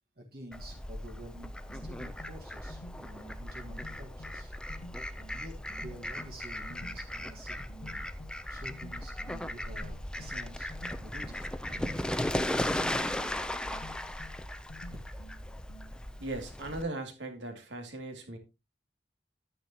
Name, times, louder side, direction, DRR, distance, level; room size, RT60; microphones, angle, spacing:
voice 1, 0.2-1.6 1.8-4.5 5.3-8.1 8.5-10.7 11.0-12.2 14.9-15.0, right 1 dB, 55° right, 1.7 m, -49 dB
Fowl, 0.5-16.8, left 1 dB, 5° left, 0.5 m, -37 dB
sound 1, 1.3-16.2, left 1 dB, 90° left, 0.8 m, -52 dB
voice 2, 16.2-18.4, right 2 dB, 85° right, 2.6 m, -38 dB
10.5 x 10.0 x 2.9 m
head